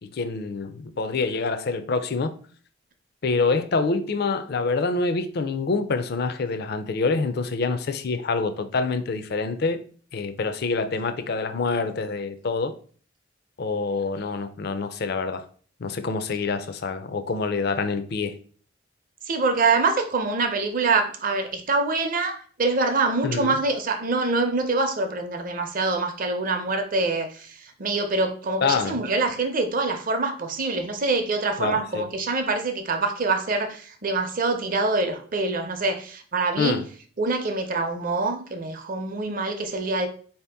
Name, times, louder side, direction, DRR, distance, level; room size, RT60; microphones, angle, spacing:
voice 1, 0.0-2.3 3.2-9.8 10.1-12.7 13.6-15.4 15.8-18.3 23.2-23.5 28.6-29.0 31.6-32.1 36.6-36.9, left 4 dB, 55° left, 0.4 m, -26 dB
voice 2, 19.3-36.8 37.2-40.1, right 3 dB, 45° right, 0.6 m, -25 dB
4.4 x 2.8 x 3.4 m
head